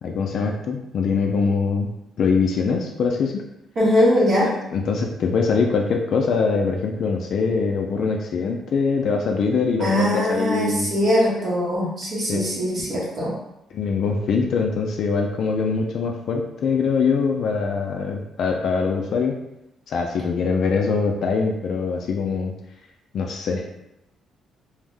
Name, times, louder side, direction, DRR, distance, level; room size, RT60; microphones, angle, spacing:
voice 1, 0.0-1.9 2.2-3.4 4.4-10.9 12.3-12.4 13.7-19.4 19.9-22.5 23.1-23.7, left 5 dB, 65° left, 1 dB, 0.3 m, -23 dB
voice 2, 3.8-4.5 9.8-13.3, left 1 dB, 55° right, -6 dB, 0.8 m, -21 dB
2.6 x 2.0 x 3.4 m, 0.86 s
cardioid pair, 90°, 0 cm